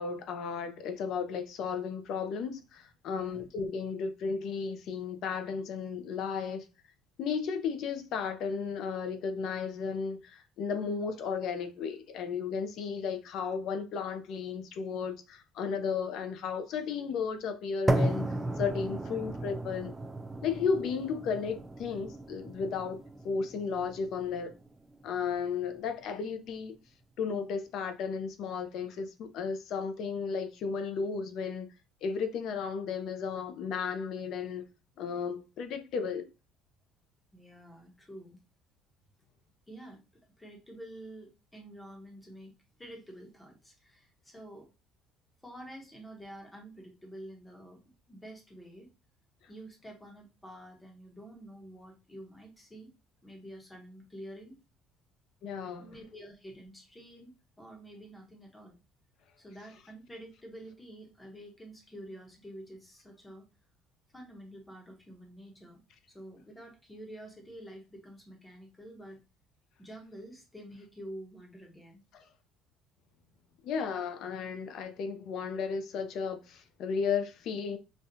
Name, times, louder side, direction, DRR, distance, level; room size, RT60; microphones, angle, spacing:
voice 1, 0.0-6.6 7.2-18.3 18.6-19.9 20.4-23.0 23.2-24.5 25.0-26.7 27.2-31.7 32.0-34.7 35.0-36.3 55.4-55.9 73.6-77.8, left 5 dB, 55° left, 0.6 m, -34 dB
voice 2, 3.1-3.5 37.3-38.4 39.7-40.0 40.4-42.5 42.8-44.7 45.4-47.8 48.1-48.9 49.5-52.9 53.2-54.6 55.8-58.8 59.4-63.4 64.1-65.8 66.1-69.2 69.8-72.0, right 1 dB, 10° left, 1.0 m, -48 dB
sound 1, 17.9-25.9, right 1 dB, 10° right, 0.3 m, -35 dB
5.2 x 2.4 x 2.7 m
cardioid pair, 165°, 0 cm